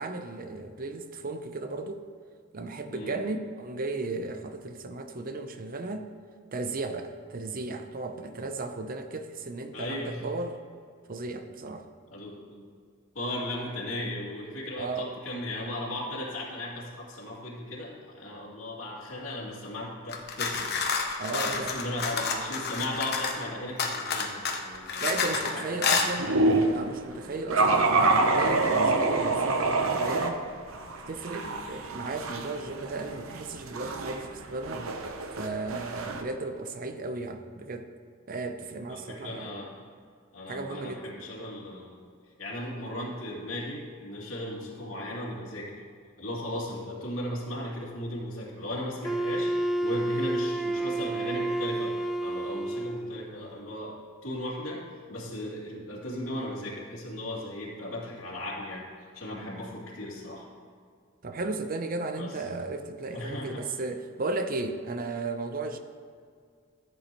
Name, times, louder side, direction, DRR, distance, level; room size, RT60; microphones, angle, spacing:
voice 1, 0.0-2.0 2.5-6.1 6.5-10.6 11.1-11.9 14.8-15.1 21.2-21.7 25.0-26.3 26.7-30.4 31.1-34.8 35.4-37.9 38.3-39.5 40.5-41.0 61.2-65.8, right 3 dB, 45° right, 7 dB, 0.6 m, -35 dB
voice 2, 9.7-10.2 12.1-12.6 13.1-20.7 21.3-26.1 31.3-31.6 38.9-39.8 40.3-42.0 42.4-45.8 46.2-49.5 49.8-51.9 52.2-54.0 54.2-54.8 55.1-58.8 59.1-60.4 62.1-62.3 63.1-63.6, left 1 dB, 75° left, -5 dB, 2.7 m, -36 dB
sound 1, 20.1-23.4 23.8-25.5 25.8-26.1, left 5 dB, 55° left, 1.1 m, -29 dB
sound 2, 26.2-26.8 27.5-30.3 30.7-36.2, right 3 dB, 90° right, 0.9 m, -26 dB
Wind instrument woodwind instrument, 49.0-53.2, right 1 dB, ahead, 0.3 m, -30 dB
14.0 x 7.9 x 3.0 m, 2.1 s
head